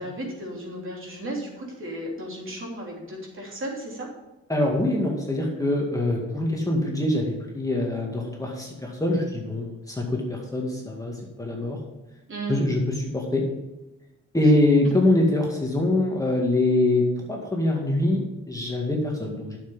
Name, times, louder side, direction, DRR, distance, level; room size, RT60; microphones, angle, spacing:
voice 1, 0.0-4.1 12.3-12.6 14.4-14.5, right 1 dB, 45° right, -2 dB, 3.4 m, -34 dB
voice 2, 4.5-11.8 12.5-12.8 13.1-13.5 14.3-19.6, left 1 dB, 10° left, -1 dB, 2.0 m, -24 dB
9.1 x 7.3 x 5.6 m, 1.0 s
cardioid pair, 90°, 30 cm